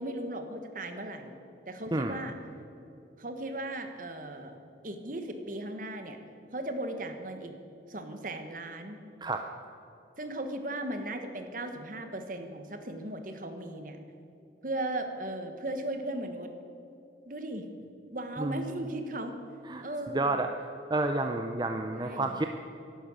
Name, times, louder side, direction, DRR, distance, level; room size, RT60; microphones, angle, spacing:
voice 1, 0.0-1.4 1.7-2.3 3.2-4.6 4.8-6.2 6.5-7.5 7.9-9.0 10.2-14.0 14.6-16.5 17.3-17.7 18.1-19.4 19.8-20.4 21.9-22.3, right 1 dB, 45° right, 7 dB, 1.4 m, -37 dB
voice 2, 1.9-2.2 9.2-9.5 18.4-18.6 19.7-19.8 20.1-20.5 20.9-22.5, right 2 dB, 25° right, 5 dB, 0.6 m, -30 dB
12.0 x 11.0 x 8.9 m, 2.8 s
head